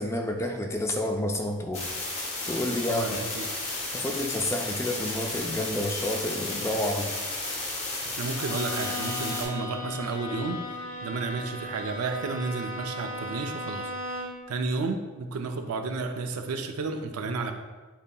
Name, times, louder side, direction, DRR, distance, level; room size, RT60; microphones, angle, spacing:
voice 1, 0.0-1.8 2.5-3.2 3.9-7.1, left 1 dB, 15° left, 3 dB, 0.4 m, -29 dB
sound 1, 1.7-9.4, left 2 dB, 30° left, 0.9 m, -33 dB
voice 2, 2.8-3.4 8.1-10.6 11.0-13.9 14.5-17.5, right 3 dB, 85° right, 6 dB, 0.4 m, -32 dB
Bowed string instrument, 8.3-14.5, left 1 dB, 70° left, 1.3 m, -36 dB
8.2 x 2.8 x 2.3 m, 1.3 s
head